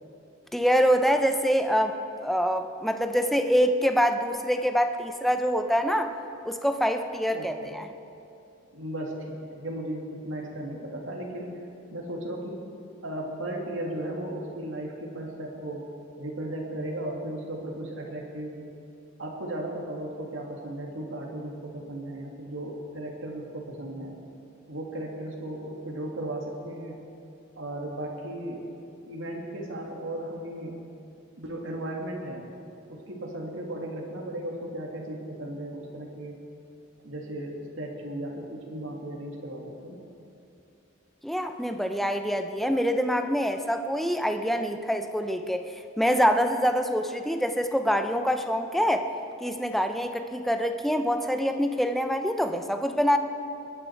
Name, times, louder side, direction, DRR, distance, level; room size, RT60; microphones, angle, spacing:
voice 1, 0.5-6.1 6.5-7.9 41.2-49.1 49.4-53.2, equal, ahead, 6 dB, 0.6 m, -25 dB
voice 2, 7.3-7.8 8.7-11.5 11.9-12.6 13.0-15.9 16.2-18.7 19.2-24.1 24.7-27.0 27.5-28.7 29.1-30.8 31.4-32.5 32.9-36.4 37.0-40.0, right 1 dB, 75° right, 0 dB, 2.3 m, -36 dB
21.0 x 10.5 x 4.6 m, 2.6 s
head